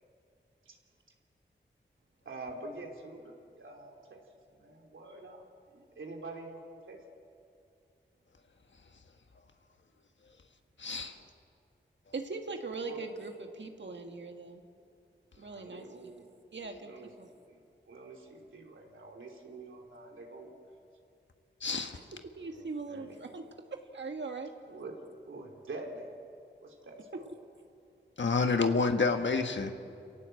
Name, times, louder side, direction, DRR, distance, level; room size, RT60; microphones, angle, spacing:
voice 1, 2.2-4.2 4.5-5.4 5.7-6.6 6.9-7.0 12.8-13.1 15.4-16.3 16.8-17.6 17.8-20.5 22.4-23.3 24.7-25.0 25.3-26.1 26.6-27.3, right 2 dB, 80° right, 1 dB, 3.0 m, -46 dB
voice 2, 10.8-11.2 16.6-16.8 21.6-22.0 28.2-29.7, left 4 dB, 70° left, 6 dB, 1.5 m, -28 dB
voice 3, 12.1-14.6 15.4-15.8 16.5-16.9 17.2-17.3 22.4-23.4 23.9-24.5, right 3 dB, 65° right, 4 dB, 1.8 m, -40 dB
26.5 x 18.0 x 7.8 m, 2.5 s
cardioid pair, 40°, 20 cm